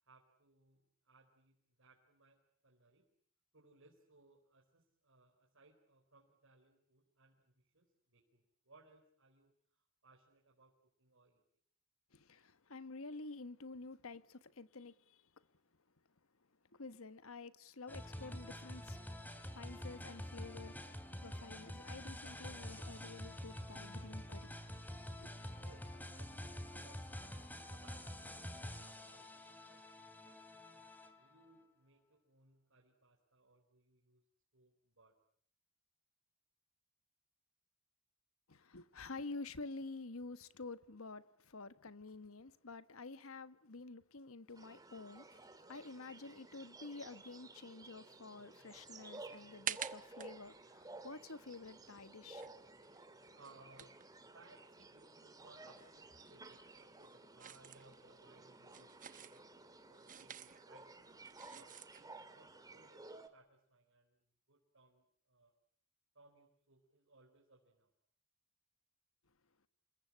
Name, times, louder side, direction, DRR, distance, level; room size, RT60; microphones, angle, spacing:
voice 1, 0.0-3.0 3.5-10.7 11.0-11.4 25.6-27.3 27.7-34.2 34.5-35.1 53.3-54.0 54.3-59.4 59.8-62.1 62.3-64.2 64.5-65.5 66.1-67.9, right 3 dB, 60° right, 4.6 m, -66 dB
voice 2, 12.1-15.5 16.7-19.0 19.4-20.8 21.2-24.5 25.2-25.3 38.5-52.5, left 3 dB, 65° left, 1.3 m, -50 dB
sound 1, 17.9-31.4, left 1 dB, 10° left, 2.9 m, -47 dB
sound 2, 44.5-63.3, right 2 dB, 15° right, 2.2 m, -55 dB
sound 3, 48.7-55.0 55.3-62.1, right 9 dB, 35° right, 1.1 m, -50 dB
28.0 x 21.5 x 8.6 m
head